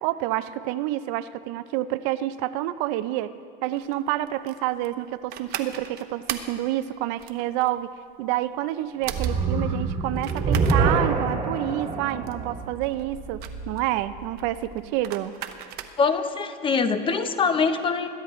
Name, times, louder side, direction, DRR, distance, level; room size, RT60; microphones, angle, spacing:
voice 1, 0.0-15.4, right 14 dB, 75° right, 14 dB, 0.5 m, -28 dB
sound 1, 3.8-16.3, right 10 dB, 60° right, 0.9 m, -38 dB
sound 2, 9.1-14.4, right 4 dB, 30° right, 1.3 m, -26 dB
voice 2, 16.0-18.1, left 5 dB, 30° left, 9 dB, 0.8 m, -23 dB
21.5 x 11.0 x 3.1 m, 2.4 s
cardioid pair, 130°, 19 cm